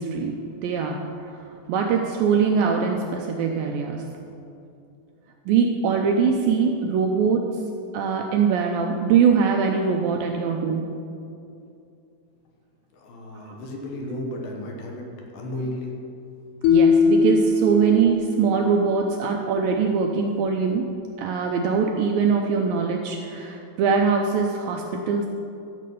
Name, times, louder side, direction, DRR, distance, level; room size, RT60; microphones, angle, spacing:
voice 1, 0.0-1.4 1.7-4.0 5.5-7.5 7.9-10.9 13.4-13.5 16.7-20.9 21.2-25.3, right 6 dB, 80° right, 2 dB, 2.1 m, -22 dB
voice 2, 12.9-15.1 15.3-15.9, left 1 dB, 70° left, 0 dB, 2.7 m, -33 dB
sound 1, 16.6-18.8, left 4 dB, 85° left, 2.6 m, -20 dB
12.5 x 7.4 x 5.4 m, 2.6 s
omnidirectional pair, 4.6 m